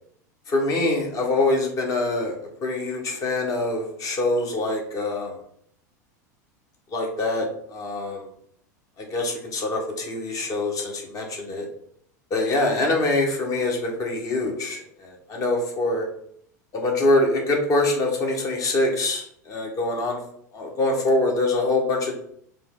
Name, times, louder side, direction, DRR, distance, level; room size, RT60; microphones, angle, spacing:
voice 1, 0.5-2.3 2.6-5.4 6.9-8.2 9.0-11.7 12.3-16.1 16.7-20.2 20.5-22.1, left 2 dB, 35° left, 1 dB, 1.3 m, -24 dB
5.0 x 2.0 x 3.8 m, 0.66 s
hypercardioid pair, 90°, 10 cm